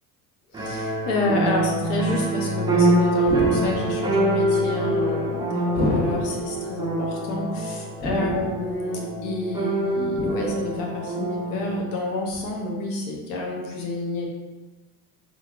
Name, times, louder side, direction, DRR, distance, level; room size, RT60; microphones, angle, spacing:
voice 1, 0.5-14.3, left 2 dB, 80° left, 0 dB, 0.9 m, -28 dB
sound 1, 0.5-11.8, right 2 dB, 10° right, 0.3 m, -25 dB
sound 2, 3.3-4.1 5.8-6.5 8.0-8.7 10.1-10.7 12.3-12.4, left 1 dB, 20° left, 0.8 m, -28 dB
4.4 x 2.2 x 2.4 m, 1.2 s
supercardioid pair, 95°, 46 cm